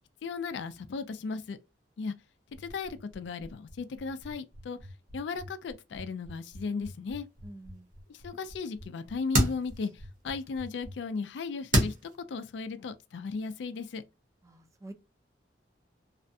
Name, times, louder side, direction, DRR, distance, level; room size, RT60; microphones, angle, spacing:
voice 1, 0.2-1.6 2.0-2.1 2.6-4.8 5.1-7.3 8.1-9.9 10.2-11.9 12.3-14.0, left 4 dB, 85° left, 0.4 m, -36 dB
sound 1, 2.5-10.9, equal, 85° right, 0.9 m, -47 dB
sound 2, 6.6-12.2, right 1 dB, 50° right, 0.8 m, -33 dB
voice 2, 7.4-7.9 14.4-14.9, right 2 dB, 20° right, 0.4 m, -47 dB
2.4 x 2.1 x 2.6 m
head